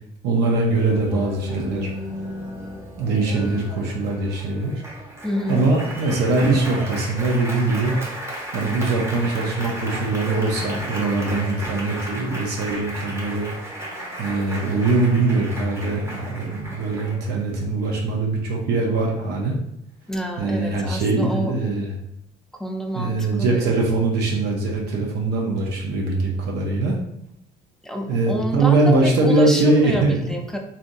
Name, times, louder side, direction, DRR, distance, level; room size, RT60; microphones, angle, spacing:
voice 1, 0.2-1.9 3.0-4.7 5.5-8.0 8.5-13.5 14.2-19.6 20.4-21.9 22.9-27.0 28.1-30.2, right 3 dB, 75° right, -2 dB, 0.7 m, -22 dB
Applause, 0.7-17.7, equal, 15° right, 0.8 m, -34 dB
voice 2, 5.2-5.6 20.1-21.5 22.5-23.7 27.8-30.6, equal, 5° left, 2 dB, 0.4 m, -28 dB
3.3 x 2.7 x 2.6 m, 0.78 s
cardioid pair, 110°, 17 cm